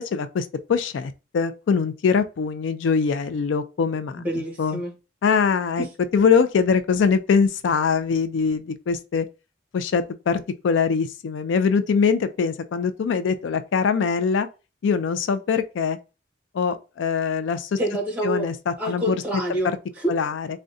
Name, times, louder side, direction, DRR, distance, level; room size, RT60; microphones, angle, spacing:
voice 1, 0.1-4.8 5.2-5.8 6.1-9.3 9.7-14.5 14.8-16.0 16.5-17.8 18.2-19.2 20.1-20.5, left 5 dB, 85° left, 0.3 m, -23 dB
voice 2, 4.2-5.0 5.8-5.9 17.8-20.2, right 1 dB, 10° right, 0.9 m, -28 dB
3.6 x 2.1 x 2.6 m
head